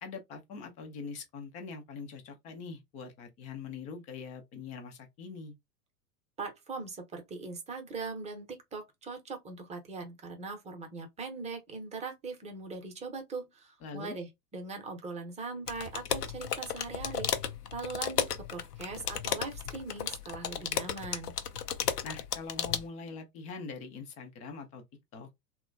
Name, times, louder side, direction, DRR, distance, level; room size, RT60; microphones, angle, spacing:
voice 1, 0.0-5.5 13.8-14.2 22.0-24.8 25.1-25.3, left 4 dB, 20° left, 0.3 m, -43 dB
voice 2, 6.4-17.3 17.7-21.3, right 4 dB, 15° right, 0.7 m, -40 dB
sound 1, 15.7-22.9, left 8 dB, 85° left, 0.6 m, -34 dB
2.9 x 2.2 x 2.5 m
hypercardioid pair, 100°, 46 cm